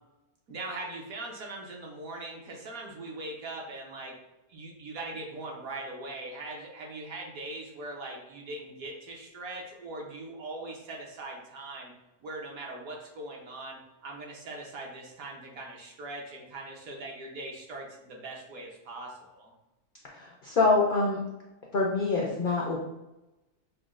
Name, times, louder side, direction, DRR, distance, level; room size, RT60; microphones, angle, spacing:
voice 1, 0.5-4.2 4.5-11.9 12.2-19.5, right 2 dB, 70° right, -1 dB, 1.2 m, -41 dB
voice 2, 20.1-21.2 21.7-22.8, left 3 dB, 85° left, -2 dB, 0.4 m, -25 dB
5.8 x 2.2 x 2.4 m, 0.98 s
omnidirectional pair, 1.6 m